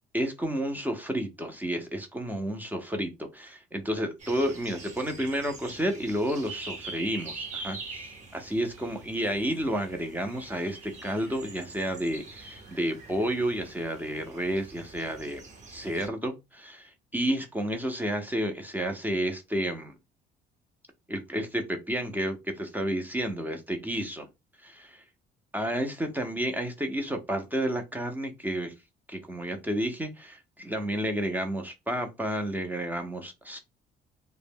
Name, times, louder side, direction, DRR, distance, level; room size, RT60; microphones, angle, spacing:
voice 1, 0.1-15.4 15.7-19.9 21.1-24.3 24.6-25.0 25.5-28.7 29.1-33.6, right 1 dB, 10° right, 5 dB, 0.5 m, -31 dB
sound 1, 4.2-16.1, right 3 dB, 45° right, 0.8 m, -44 dB
2.0 x 2.0 x 3.3 m, 0.23 s
cardioid pair, 110°, 17 cm